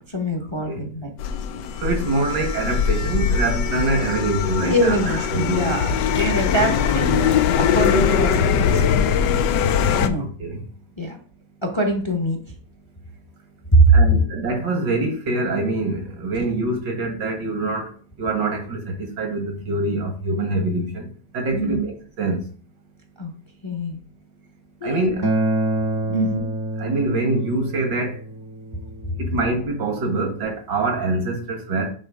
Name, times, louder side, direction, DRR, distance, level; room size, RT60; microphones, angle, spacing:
voice 1, 0.1-1.1 4.6-8.9 10.0-10.3 11.0-11.2 11.6-12.4 13.7-14.0 21.5-21.8 23.2-23.3 23.6-24.0 24.8-25.1 26.1-26.4, right 2 dB, 20° left, 0.9 m, -22 dB
sound 1, 1.2-10.1, left 7 dB, 75° left, 1.3 m, -21 dB
voice 2, 1.8-6.1 10.2-10.6 13.9-17.9 18.2-21.1 21.3-22.4 24.8-25.3 26.1-26.4 26.8-28.2 29.2-31.9, right 2 dB, 75° right, 2.2 m, -25 dB
Acoustic guitar, 25.2-30.4, right 1 dB, 20° right, 0.7 m, -27 dB
9.0 x 4.6 x 3.7 m
omnidirectional pair, 1.9 m